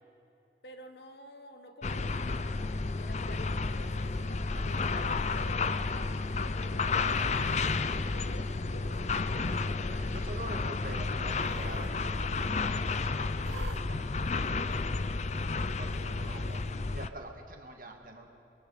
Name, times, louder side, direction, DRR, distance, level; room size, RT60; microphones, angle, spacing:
voice 1, 0.6-2.2 2.7-9.3, left 1 dB, 60° left, 6 dB, 1.5 m, -50 dB
sound 1, 1.8-17.1, left 3 dB, 35° left, 0.5 m, -31 dB
Cat, 3.6-4.2 5.0-5.4 5.8-5.9 7.0-7.7 8.7-9.4 9.6-10.2 11.2-11.9 12.2-12.3 13.4-13.8 14.7-14.8 15.9-16.5, right 3 dB, 70° right, 1.1 m, -49 dB
voice 2, 10.1-13.3 13.7-14.8 15.4-18.3, right 1 dB, 50° right, 3 dB, 2.0 m, -46 dB
26.5 x 23.0 x 5.0 m, 2.9 s
head